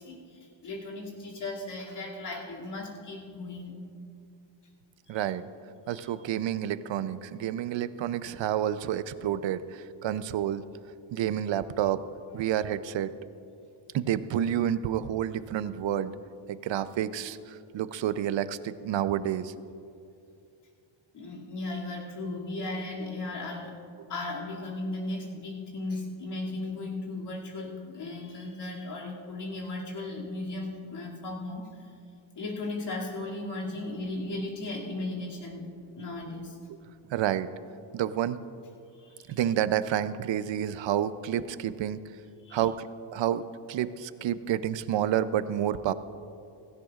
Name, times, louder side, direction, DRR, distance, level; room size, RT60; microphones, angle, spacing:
voice 1, 0.0-3.8 5.1-5.2 5.9-6.0 12.4-12.5 21.1-23.7 24.1-31.9 32.3-35.7 36.0-36.6 38.9-39.4 42.4-42.6, left 2 dB, 55° left, -3 dB, 2.6 m, -36 dB
voice 2, 5.1-5.5 5.9-10.6 11.1-12.0 12.3-13.1 13.9-16.2 16.5-19.5 36.7-36.8 37.1-37.5 37.9-38.4 39.3-42.0 42.5-42.9 43.1-43.4 43.7-45.9, right 10 dB, 65° right, 13 dB, 0.6 m, -29 dB
16.5 x 16.5 x 2.4 m, 2.5 s
cardioid pair, 130°, 49 cm